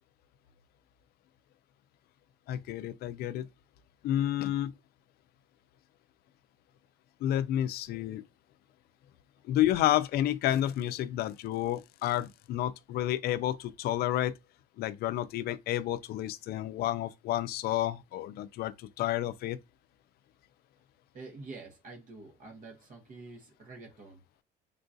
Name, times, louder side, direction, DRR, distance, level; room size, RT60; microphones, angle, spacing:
voice 1, 2.5-3.5 4.0-4.7 7.2-8.2 9.5-14.3 14.8-19.6, left 13 dB, 65° left, 0.4 m, -30 dB
voice 2, 21.1-24.2, right 3 dB, 50° right, 1.0 m, -47 dB
3.7 x 2.3 x 2.6 m
cardioid pair, 110°, 17 cm